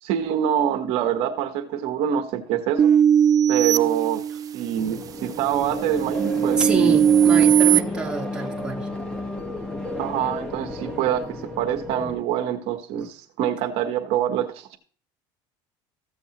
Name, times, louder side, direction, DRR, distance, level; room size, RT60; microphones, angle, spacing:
voice 1, 0.0-2.9 3.5-4.2 4.5-7.0 10.0-14.8, right 10 dB, 65° right, 5 dB, 1.1 m, -25 dB
sound 1, 2.8-4.7 5.3-7.8, right 9 dB, 35° right, 0.4 m, -19 dB
sound 2, 4.8-12.2, left 1 dB, 5° left, 1.4 m, -32 dB
voice 2, 6.6-8.9, right 3 dB, 10° right, -1 dB, 1.5 m, -27 dB
14.5 x 7.1 x 2.9 m, 0.42 s
cardioid pair, 125°, 11 cm